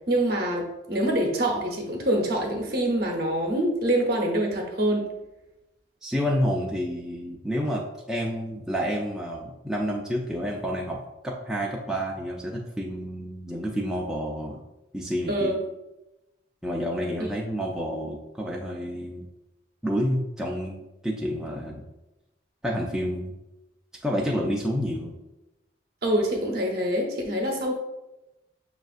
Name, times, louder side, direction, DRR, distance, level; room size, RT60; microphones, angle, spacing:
voice 1, 0.1-5.1 15.3-15.6 26.0-27.8, right 1 dB, 55° right, 0 dB, 0.8 m, -25 dB
voice 2, 6.0-14.6 14.9-15.5 16.6-19.3 19.8-21.8 22.6-23.3 24.0-25.1, equal, 5° right, -3 dB, 0.3 m, -29 dB
6.2 x 2.4 x 2.4 m, 0.96 s
head